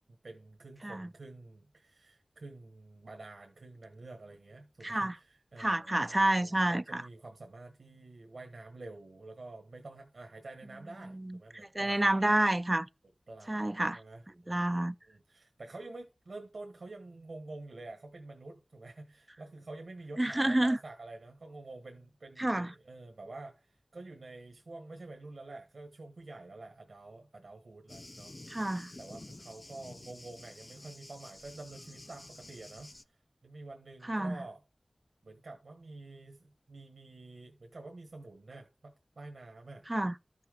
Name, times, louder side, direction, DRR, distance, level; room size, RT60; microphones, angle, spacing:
voice 1, 0.1-12.2 13.3-14.7 15.1-28.3 29.0-34.6 35.2-39.9, right 2 dB, 80° right, 1.3 m, -48 dB
voice 2, 4.8-5.1 5.6-7.0 11.0-12.9 13.5-14.0 14.5-14.9 20.2-20.8 22.4-22.7 28.5-28.9 34.1-34.4 39.9-40.1, right 1 dB, 30° right, 0.4 m, -29 dB
Thunder, 27.9-33.0, left 2 dB, 40° left, 0.6 m, -50 dB
12.5 x 5.7 x 5.1 m
cardioid pair, 40°, 0 cm